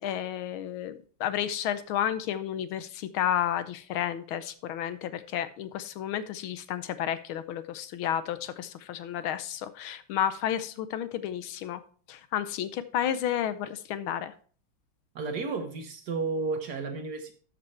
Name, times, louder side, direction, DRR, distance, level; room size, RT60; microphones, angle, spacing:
voice 1, 0.0-11.8 12.1-14.3, left 10 dB, 75° left, 13 dB, 1.5 m, -31 dB
voice 2, 15.1-17.3, right 4 dB, 55° right, 6 dB, 1.5 m, -32 dB
13.0 x 5.2 x 4.4 m, 0.42 s
omnidirectional pair, 2.4 m